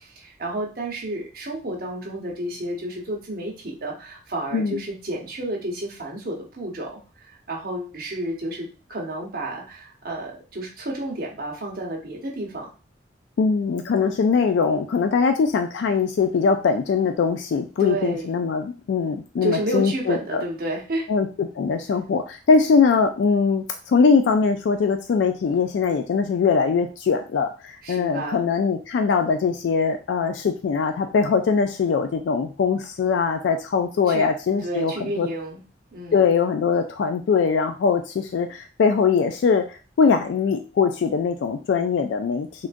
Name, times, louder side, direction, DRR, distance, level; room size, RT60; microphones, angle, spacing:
voice 1, 0.0-12.7 17.8-18.3 19.4-21.0 27.8-28.4 34.1-34.3 34.6-35.6 35.9-36.2, right 1 dB, 55° right, -2 dB, 0.9 m, -31 dB
voice 2, 13.4-20.4 21.1-35.3 36.1-42.7, left 5 dB, 80° left, 7 dB, 0.3 m, -21 dB
3.6 x 2.4 x 2.5 m, 0.34 s
head